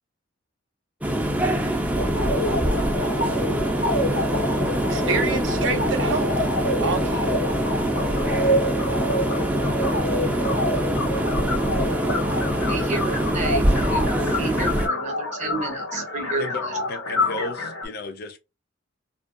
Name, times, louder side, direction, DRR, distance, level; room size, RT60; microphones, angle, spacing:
sound 1, 1.0-14.9, right 1 dB, 5° right, 0.3 m, -24 dB
sound 2, 1.9-17.9, left 1 dB, 70° left, 0.9 m, -27 dB
voice 1, 4.9-6.5 6.8-7.3, right 3 dB, 70° right, 0.6 m, -27 dB
voice 2, 12.5-16.8, right 3 dB, 35° right, 0.7 m, -31 dB
voice 3, 16.9-18.4, left 3 dB, 50° left, 0.5 m, -33 dB
2.5 x 2.2 x 2.5 m
head